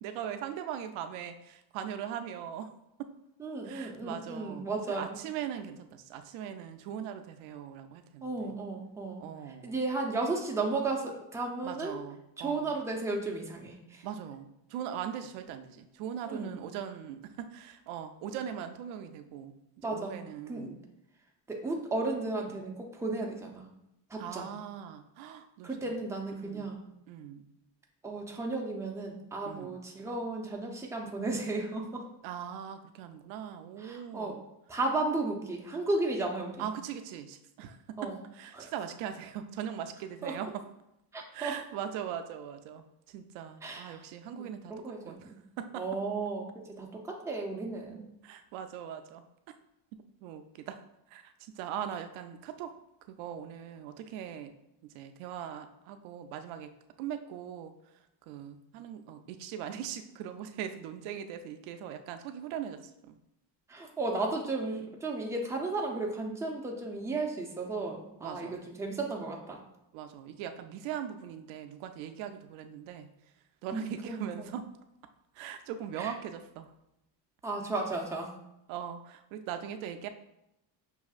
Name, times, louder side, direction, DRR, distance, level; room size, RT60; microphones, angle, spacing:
voice 1, 0.0-2.7 3.0-3.1 3.6-8.5 9.2-9.8 11.6-12.8 14.0-20.8 24.2-26.0 26.3-26.7 27.1-27.5 29.5-29.8 32.2-34.4 36.6-40.6 41.3-45.8 48.2-49.3 50.2-50.8 51.1-52.7 53.1-54.6 54.8-56.7 57.0-57.7 58.3-63.2 68.2-68.6 69.9-73.1 73.6-74.7 75.3-76.7 78.7-80.1, right 9 dB, 90° right, 8 dB, 0.5 m, -40 dB
voice 2, 3.4-5.2 8.2-9.2 9.6-12.0 12.4-14.0 16.3-16.6 19.8-20.1 20.5-20.7 21.5-23.7 24.1-24.5 25.6-26.8 28.0-32.0 33.8-34.4 34.7-36.6 38.0-38.2 38.5-38.7 40.2-40.3 41.1-41.5 43.6-44.0 44.4-44.5 44.7-45.4 45.8-48.0 63.7-69.6 73.7-74.5 76.0-76.1 77.4-78.3, right 3 dB, 5° right, 0 dB, 0.6 m, -34 dB
6.1 x 2.7 x 2.4 m, 0.85 s
cardioid pair, 110°, 47 cm